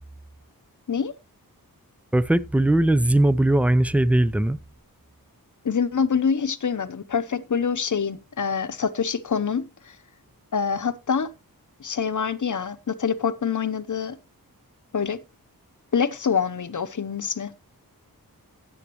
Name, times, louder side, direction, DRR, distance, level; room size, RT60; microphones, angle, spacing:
voice 1, 2.1-4.6, right 1 dB, 5° right, 0.5 m, -19 dB
voice 2, 5.6-9.9 10.5-11.3 11.8-14.2 14.9-15.2 15.9-17.5, left 6 dB, 55° left, 0.8 m, -25 dB
14.0 x 8.5 x 3.0 m
wide cardioid pair, 85°, 37 cm